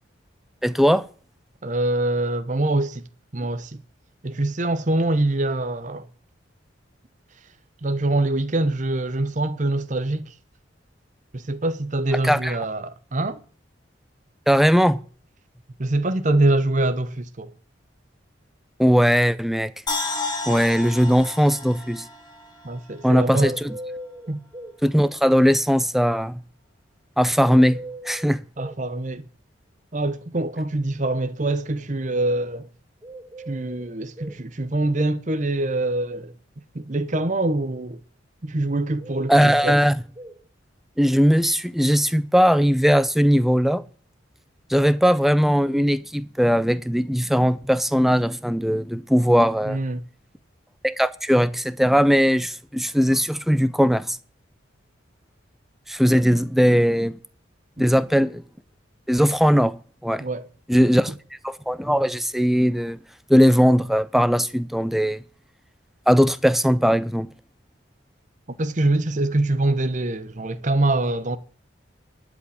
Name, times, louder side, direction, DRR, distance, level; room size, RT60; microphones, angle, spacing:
voice 1, 0.6-1.0 12.2-12.5 14.5-15.0 18.8-19.7 20.5-22.1 23.0-23.8 24.8-26.4 27.2-28.4 39.3-39.9 41.0-43.8 44.7-49.8 50.8-54.2 55.9-57.2 57.8-58.4 59.1-59.8 60.0-60.2 60.7-61.1 61.4-63.0 63.3-65.2 66.1-67.3, equal, ahead, 0.5 m, -19 dB
voice 2, 1.6-3.1 3.3-3.8 4.2-6.1 7.8-10.3 11.3-13.4 15.8-17.5 22.6-23.6 24.3-24.4 28.6-29.3 29.9-32.7 33.5-36.3 36.7-38.0 38.4-39.8 49.6-50.0 60.2-60.5 68.5-71.4, right 2 dB, 40° right, 0.8 m, -24 dB
sound 1, 19.9-23.1 23.4-23.5, left 3 dB, 20° left, 1.9 m, -31 dB
sound 2, 23.4-24.8 27.4-28.8 33.0-34.4 39.0-40.4, right 1 dB, 15° right, 3.1 m, -39 dB
11.5 x 5.2 x 8.5 m
head